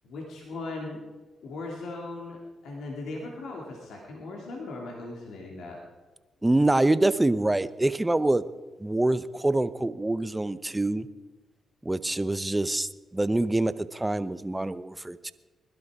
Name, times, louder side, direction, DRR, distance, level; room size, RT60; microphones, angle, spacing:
voice 1, 0.0-1.0 1.4-5.8, left 2 dB, 80° left, -1 dB, 2.6 m, -38 dB
voice 2, 6.4-8.4 8.8-11.1 11.8-15.3, right 2 dB, 15° right, 14 dB, 0.8 m, -25 dB
21.0 x 12.0 x 4.9 m, 1.3 s
supercardioid pair, 50°, 0 cm